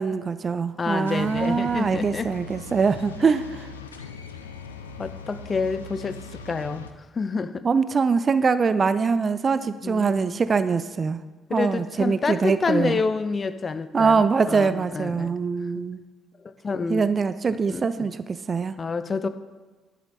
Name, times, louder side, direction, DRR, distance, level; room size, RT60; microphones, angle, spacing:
voice 1, 0.0-3.7 7.6-11.2 11.5-13.0 13.9-16.0 16.9-18.7, right 5 dB, 35° right, 13 dB, 0.5 m, -23 dB
voice 2, 0.8-2.3 5.0-6.2 6.5-6.8 7.1-7.7 9.8-10.4 11.5-15.3 15.7-15.8 16.4-17.0 17.5-18.1 18.8-19.3, left 4 dB, 35° left, 12 dB, 0.6 m, -28 dB
sound 1, 1.0-6.9, left 4 dB, 85° left, 0.5 m, -40 dB
11.0 x 7.3 x 4.1 m, 1.3 s
figure-of-eight pair, 45°, 0 cm